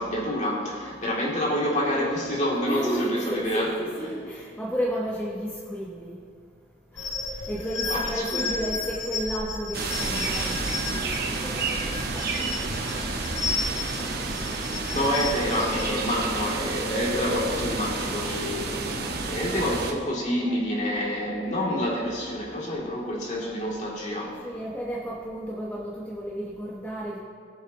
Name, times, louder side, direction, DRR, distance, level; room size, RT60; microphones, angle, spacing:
voice 1, 0.0-3.7 7.0-7.5 7.9-8.5 14.9-24.3, left 1 dB, 40° left, -4 dB, 2.5 m, -28 dB
voice 2, 2.6-6.2 7.0-7.1 7.5-12.6 12.9-13.0 13.9-14.1 24.4-27.2, equal, 10° left, -4 dB, 0.9 m, -33 dB
sound 1, 7.0-15.9, left 3 dB, 90° left, 1.6 m, -33 dB
sound 2, 9.7-19.9, right 3 dB, 55° right, 1.1 m, -30 dB
19.5 x 7.4 x 2.9 m, 2.2 s
head